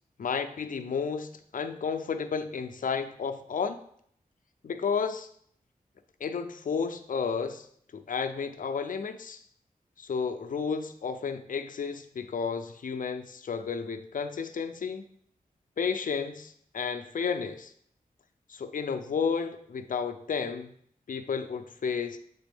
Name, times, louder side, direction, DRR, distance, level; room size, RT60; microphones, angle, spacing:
voice 1, 0.2-3.8 4.6-5.3 6.2-7.7 7.9-9.4 10.0-15.0 15.8-17.7 18.5-20.7 21.1-22.2, left 6 dB, 65° left, 9 dB, 0.5 m, -32 dB
6.8 x 4.1 x 3.5 m, 0.64 s
wide cardioid pair, 80°, 15 cm